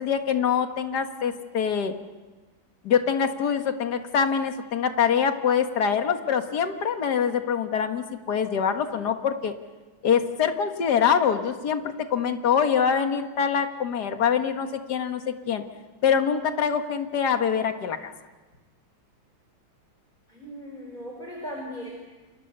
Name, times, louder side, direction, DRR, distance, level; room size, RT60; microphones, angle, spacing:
voice 1, 0.0-1.9 2.8-9.5 10.0-15.6 16.0-18.1, left 7 dB, 55° left, 6 dB, 2.1 m, -24 dB
voice 2, 20.3-21.9, equal, 20° left, -1 dB, 4.8 m, -37 dB
29.5 x 28.5 x 6.8 m, 1.2 s
omnidirectional pair, 2.2 m